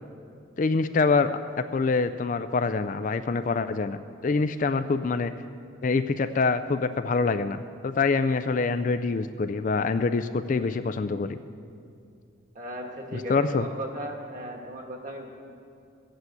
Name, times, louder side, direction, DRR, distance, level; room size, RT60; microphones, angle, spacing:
voice 1, 0.6-4.0 4.2-5.3 5.8-11.4 13.1-13.7, left 4 dB, 40° left, 11 dB, 0.4 m, -25 dB
voice 2, 12.5-15.3, equal, 40° right, 2 dB, 1.6 m, -36 dB
15.5 x 8.2 x 7.9 m, 2.5 s
head